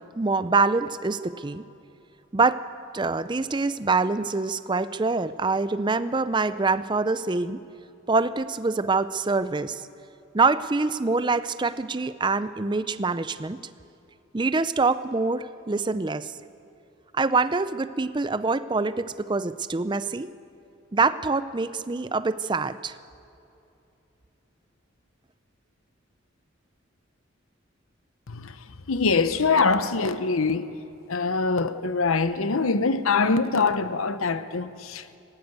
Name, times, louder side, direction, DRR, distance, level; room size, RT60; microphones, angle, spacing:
voice 1, 0.0-1.6 2.3-2.6 2.9-7.6 8.1-9.9 10.3-13.6 14.3-16.3 17.1-20.3 20.9-23.0, right 3 dB, 20° right, 0.5 m, -25 dB
voice 2, 28.9-30.7 31.1-35.2, left 4 dB, 85° left, 0.9 m, -24 dB
18.5 x 17.5 x 8.1 m
head